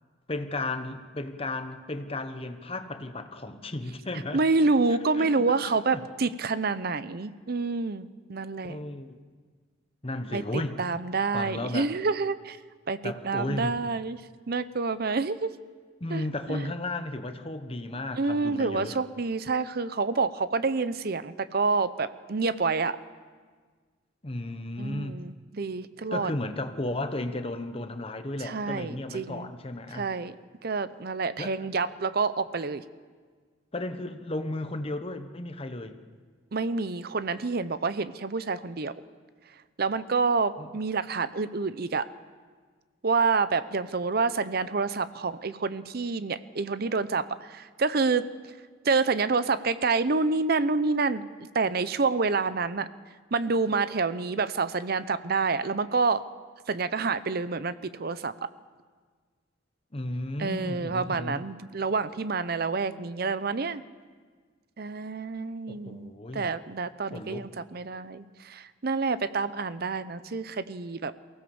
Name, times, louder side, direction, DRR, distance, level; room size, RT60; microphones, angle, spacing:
voice 1, 0.3-4.4 5.2-6.0 8.6-9.2 10.0-10.8 11.3-11.9 13.0-13.8 16.0-19.0 24.2-25.2 26.1-30.1 31.4-31.5 33.7-36.0 40.6-40.7 59.9-61.4 65.7-66.6 67.1-67.5, left 2 dB, 30° left, 8 dB, 1.1 m, -34 dB
voice 2, 4.3-8.8 10.3-12.6 12.9-14.2 14.5-15.5 16.1-16.2 16.5-16.6 18.1-23.0 24.8-26.3 28.4-29.5 29.9-30.3 30.6-32.8 36.5-38.9 39.8-42.1 43.0-48.3 48.8-51.3 51.5-52.9 53.3-56.2 56.7-58.5 60.4-63.8 64.8-71.1, right 4 dB, 55° right, 14 dB, 0.7 m, -28 dB
23.0 x 16.0 x 7.1 m, 1.5 s
head